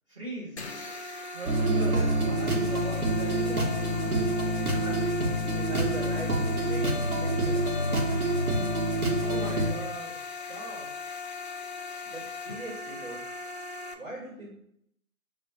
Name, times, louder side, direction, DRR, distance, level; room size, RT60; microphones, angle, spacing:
voice 1, 0.1-0.6 1.3-4.3 9.2-10.2 10.5-11.2, right 1 dB, 20° right, -6 dB, 1.2 m, -40 dB
sound 1, 0.6-13.9, left 4 dB, 50° left, 0.5 m, -39 dB
sound 2, 1.5-9.7, right 1 dB, 80° right, 1.2 m, -27 dB
voice 2, 4.7-7.7 12.0-13.2 13.9-14.5, right 2 dB, 60° right, -3 dB, 1.6 m, -41 dB
4.6 x 2.3 x 3.7 m, 0.72 s
figure-of-eight pair, 160°, 43 cm